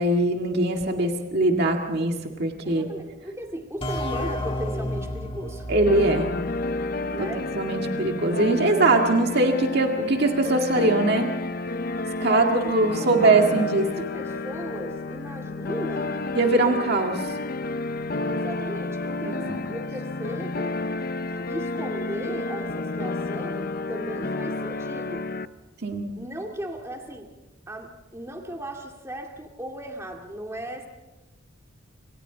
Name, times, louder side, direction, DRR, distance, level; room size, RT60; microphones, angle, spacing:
voice 1, 0.0-2.1 2.4-2.9 5.7-6.3 7.2-7.3 7.6-11.3 12.2-13.9 16.3-17.2 19.2-19.6 25.8-26.1, right 2 dB, 50° right, 2 dB, 2.0 m, -22 dB
voice 2, 2.6-5.7 7.1-7.5 12.1-16.2 18.2-20.8 21.3-25.3 26.2-27.3 27.7-30.9, right 1 dB, 15° right, 1 dB, 2.3 m, -37 dB
sound 1, 3.8-7.4, left 1 dB, 25° left, 2.7 m, -32 dB
sound 2, 5.9-25.5, left 3 dB, 45° left, 0.6 m, -30 dB
26.5 x 26.0 x 4.0 m, 1.0 s
head